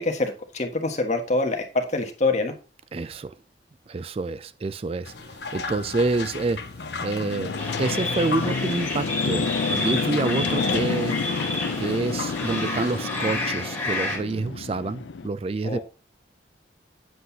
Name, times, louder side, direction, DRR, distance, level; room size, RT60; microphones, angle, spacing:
voice 1, 0.0-2.5 15.6-15.8, left 2 dB, 40° left, 1.5 m, -25 dB
voice 2, 2.9-3.4 3.9-6.7 7.0-11.2 11.8-15.8, right 3 dB, 30° right, 0.3 m, -28 dB
sound 1, 5.0-13.0, left 4 dB, 65° left, 1.0 m, -37 dB
sound 2, 5.5-15.3, left 4 dB, 80° left, 0.5 m, -30 dB
sound 3, 7.6-14.2, left 2 dB, 10° left, 3.4 m, -30 dB
8.0 x 7.7 x 2.8 m
head